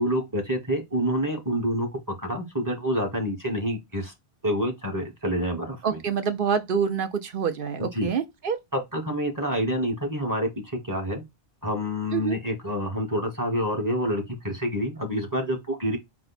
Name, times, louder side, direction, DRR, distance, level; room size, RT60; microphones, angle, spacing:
voice 1, 0.0-4.1 4.4-6.0 7.8-8.1 8.7-11.2 11.6-16.0, equal, 20° right, 1.3 m, -27 dB
voice 2, 5.8-8.6 12.1-12.4, right 6 dB, 60° right, 0.9 m, -26 dB
4.2 x 2.2 x 4.0 m
omnidirectional pair, 1.1 m